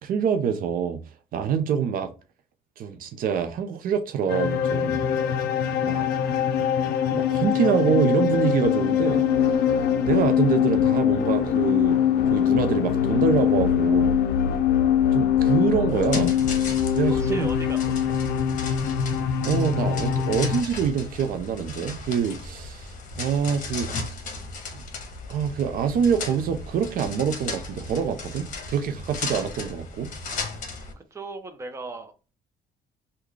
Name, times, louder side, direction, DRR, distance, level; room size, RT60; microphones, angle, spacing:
voice 1, 0.0-1.0 1.3-2.1 2.8-5.0 5.8-6.1 7.1-9.2 10.0-12.0 12.3-14.2 15.1-16.4 16.9-17.5 19.4-23.9 24.7-24.8 25.3-30.1, right 7 dB, 60° right, 0.5 m, -25 dB
sound 1, 4.3-20.6, left 9 dB, 70° left, 0.4 m, -23 dB
sound 2, 15.9-30.9, left 3 dB, 50° left, 0.9 m, -36 dB
voice 2, 17.2-18.0 31.1-32.1, right 2 dB, 15° right, 0.6 m, -37 dB
3.6 x 2.2 x 3.1 m
cardioid pair, 110°, 17 cm